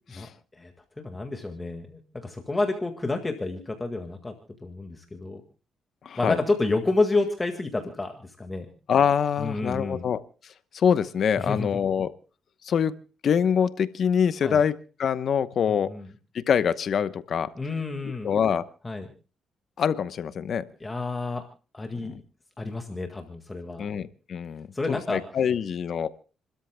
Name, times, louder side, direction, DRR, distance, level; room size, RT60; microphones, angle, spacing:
voice 1, 0.1-4.3 4.6-5.4 6.2-8.7 9.4-10.1 11.4-11.8 14.4-14.6 15.7-16.1 17.6-18.4 18.8-19.1 20.8-21.4 21.7-22.1 22.6-23.9 24.7-25.2, left 2 dB, 20° left, 4 dB, 1.8 m, -29 dB
voice 2, 6.0-6.4 8.9-10.2 10.7-12.1 12.6-12.9 13.2-15.9 16.3-17.5 18.2-18.6 19.8-20.6 22.0-22.2 23.8-26.1, left 7 dB, 60° left, 13 dB, 0.9 m, -25 dB
30.0 x 13.0 x 2.2 m, 0.37 s
cardioid pair, 90°, 0 cm